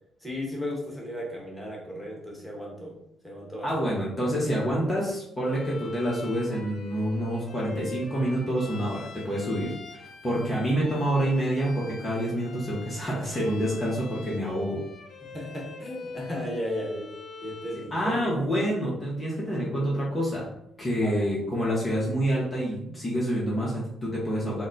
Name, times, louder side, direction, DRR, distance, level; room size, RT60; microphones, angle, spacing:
voice 1, 0.2-3.0 3.2-3.9 15.2-17.1 17.4-18.3 21.0-21.3, left 1 dB, 5° left, -3 dB, 1.3 m, -35 dB
voice 2, 3.6-14.8 17.9-20.5 20.8-24.7, equal, 25° left, -5 dB, 1.0 m, -27 dB
Bowed string instrument, 5.4-18.0, left 4 dB, 60° left, 0.5 m, -44 dB
4.0 x 2.1 x 3.9 m, 0.78 s
cardioid pair, 90°, 0 cm